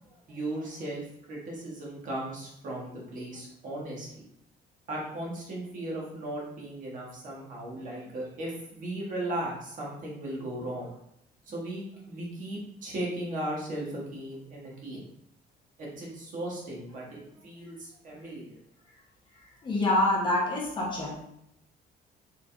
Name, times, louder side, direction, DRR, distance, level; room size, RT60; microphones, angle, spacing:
voice 1, 0.0-4.3 4.9-10.9 11.5-15.0 15.8-18.6, right 1 dB, 50° right, -4 dB, 1.4 m, -37 dB
voice 2, 19.6-21.1, left 1 dB, 25° left, -4 dB, 1.1 m, -26 dB
4.4 x 3.8 x 2.6 m, 0.74 s
cardioid pair, 170°, 18 cm